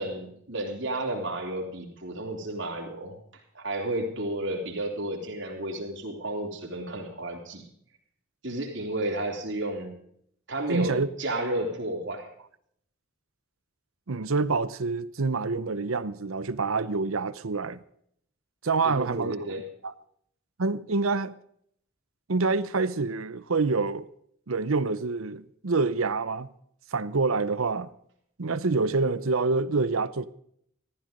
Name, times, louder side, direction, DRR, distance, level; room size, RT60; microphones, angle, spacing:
voice 1, 0.0-7.6 8.4-9.9 10.5-12.3 18.8-19.7, right 1 dB, 55° right, 3.6 m, -32 dB
voice 2, 10.7-11.1 14.1-17.8 18.6-19.4 19.8-19.9 20.6-21.3 22.3-24.1 24.5-26.5 26.9-27.9 28.4-30.3, right 3 dB, 75° right, 0.8 m, -26 dB
15.0 x 14.0 x 5.3 m
head